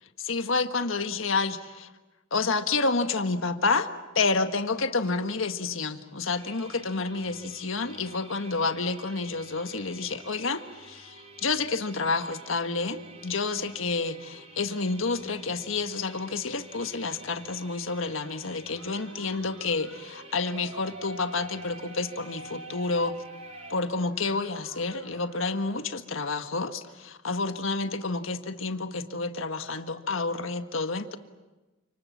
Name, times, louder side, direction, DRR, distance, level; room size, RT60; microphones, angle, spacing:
voice 1, 0.2-1.9 2.3-3.9 4.1-23.2 23.7-31.2, left 3 dB, 80° left, 8 dB, 1.6 m, -29 dB
sound 1, 6.4-23.7, right 3 dB, 30° right, 4.4 m, -50 dB
sound 2, 18.7-25.9, right 1 dB, 65° right, 2.1 m, -47 dB
29.0 x 27.0 x 7.4 m, 1.1 s
head